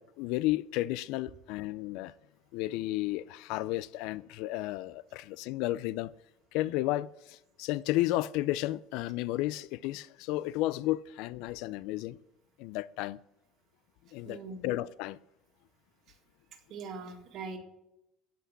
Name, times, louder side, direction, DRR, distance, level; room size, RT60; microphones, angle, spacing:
voice 1, 0.0-2.1 2.5-6.1 6.5-12.2 12.6-13.2 14.1-15.2, left 16 dB, 60° left, 0.3 m, -33 dB
voice 2, 14.2-14.7 16.7-17.6, right 4 dB, 40° right, 1.9 m, -41 dB
16.0 x 5.8 x 7.4 m
cardioid pair, 180°, 0 cm